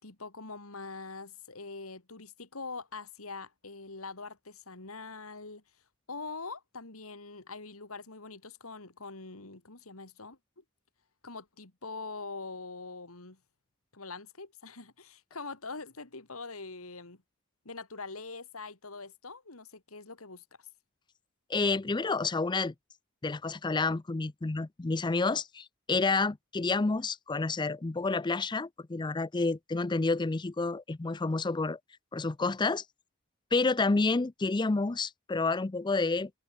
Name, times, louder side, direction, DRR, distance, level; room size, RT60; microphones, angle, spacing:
voice 1, 0.0-5.6 6.1-10.6 11.2-13.4 13.9-17.2 17.6-20.7, left 3 dB, 80° left, 2.8 m, -43 dB
voice 2, 21.5-22.7 23.2-31.8 32.1-32.8 33.5-36.3, left 3 dB, 20° left, 0.5 m, -29 dB
head